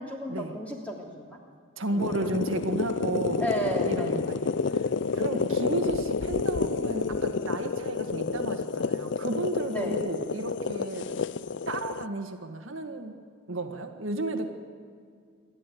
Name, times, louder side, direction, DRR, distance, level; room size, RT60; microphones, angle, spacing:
voice 1, 0.0-1.4 1.9-2.1 3.4-4.2 5.3-5.5 9.7-10.0 11.0-11.2, equal, 5° left, -1 dB, 3.1 m, -33 dB
voice 2, 1.8-3.4 3.8-11.1 11.7-13.1 13.5-14.5, right 2 dB, 65° right, 4 dB, 1.8 m, -33 dB
sound 1, 2.0-12.0, left 5 dB, 55° left, 0.5 m, -29 dB
27.0 x 12.0 x 9.4 m, 2.1 s
head